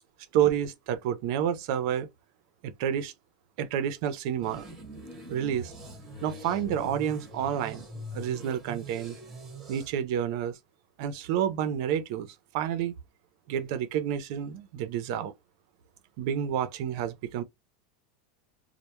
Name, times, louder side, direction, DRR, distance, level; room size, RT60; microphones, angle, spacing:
voice 1, 0.3-2.1 2.6-3.1 3.6-4.7 5.3-5.7 6.2-9.2 9.7-10.6 11.0-12.9 13.5-15.3 16.2-17.4, right 9 dB, 50° right, 0.5 m, -29 dB
sound 1, 4.4-9.9, right 1 dB, 10° right, 0.9 m, -43 dB
2.1 x 2.0 x 2.9 m
supercardioid pair, 170°, 3 cm